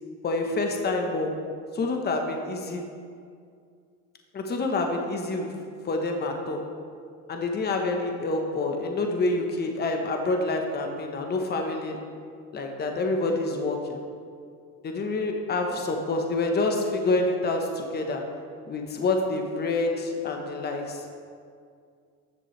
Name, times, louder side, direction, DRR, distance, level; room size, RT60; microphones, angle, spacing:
voice 1, 0.2-1.3 1.7-2.8 4.3-5.5 5.8-6.6 7.3-12.0 12.5-14.0 14.8-18.2 18.7-21.0, left 2 dB, 30° left, 3 dB, 1.1 m, -27 dB
13.5 x 7.5 x 3.3 m, 2.3 s
cardioid pair, 110°, 33 cm